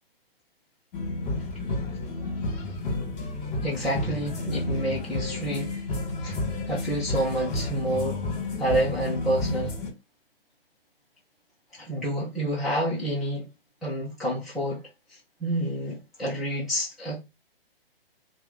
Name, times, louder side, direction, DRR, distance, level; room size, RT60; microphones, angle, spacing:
sound 1, 0.9-9.9, left 2 dB, 30° left, 1.5 m, -31 dB
voice 1, 3.6-5.8 6.2-6.4 6.7-8.2 8.6-9.8 11.7-13.5 13.8-17.2, right 1 dB, ahead, 0.6 m, -29 dB
2.9 x 2.4 x 3.8 m
figure-of-eight pair, 135°, 30 cm